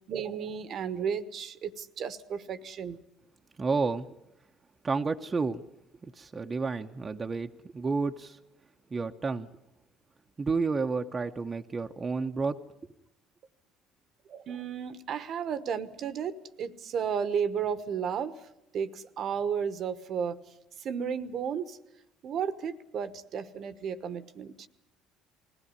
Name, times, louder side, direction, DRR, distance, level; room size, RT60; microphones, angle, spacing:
voice 1, 0.1-3.0 14.3-18.5 18.7-20.4 20.8-21.8 22.2-24.7, right 7 dB, 55° right, 13 dB, 1.2 m, -33 dB
voice 2, 3.6-4.1 4.8-5.6 6.0-8.4 8.9-9.5 10.4-12.6, right 4 dB, 30° right, 5 dB, 1.0 m, -30 dB
20.5 x 16.5 x 9.7 m, 0.89 s
hypercardioid pair, 65°, 0 cm